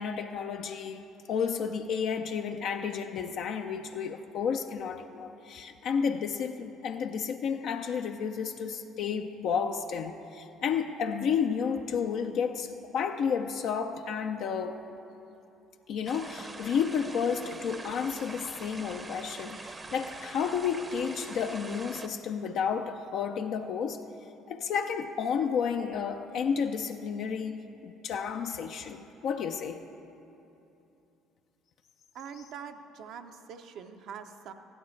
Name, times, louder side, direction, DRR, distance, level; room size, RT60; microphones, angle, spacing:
voice 1, 0.0-14.8 15.9-24.0 24.5-29.8 32.3-32.4, left 6 dB, 65° left, 5 dB, 0.5 m, -31 dB
sound 1, 16.1-22.1, right 3 dB, 25° right, 0.7 m, -44 dB
voice 2, 32.1-34.5, right 7 dB, 65° right, 6 dB, 0.7 m, -44 dB
15.5 x 11.5 x 3.2 m, 2.9 s
supercardioid pair, 70°, 0 cm